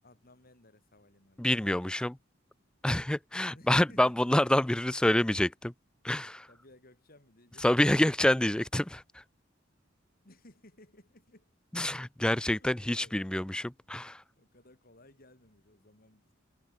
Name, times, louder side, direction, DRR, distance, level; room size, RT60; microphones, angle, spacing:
voice 1, 0.0-1.5 3.5-4.3 6.5-7.7 10.2-11.5 12.6-13.2 14.4-16.3, left 1 dB, 50° left, 7.9 m, -58 dB
voice 2, 1.4-2.2 2.8-5.7 6.0-6.5 7.6-9.0 11.7-14.2, left 1 dB, 5° left, 0.3 m, -27 dB
head